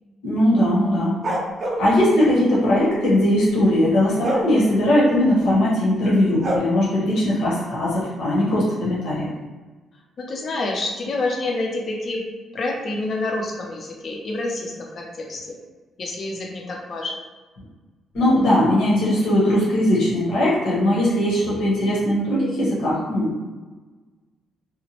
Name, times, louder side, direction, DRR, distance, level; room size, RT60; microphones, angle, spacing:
voice 1, 0.2-1.2 1.8-9.3 18.1-23.4, left 1 dB, 75° left, -7 dB, 0.9 m, -19 dB
sound 1, 1.2-1.9 4.2-4.5 6.4-6.6, right 1 dB, 30° right, 0.5 m, -24 dB
voice 2, 10.2-12.2 12.5-15.6 16.0-17.2, left 2 dB, 40° left, 0 dB, 0.6 m, -28 dB
2.9 x 2.1 x 2.9 m, 1.3 s
cardioid pair, 145°, 0 cm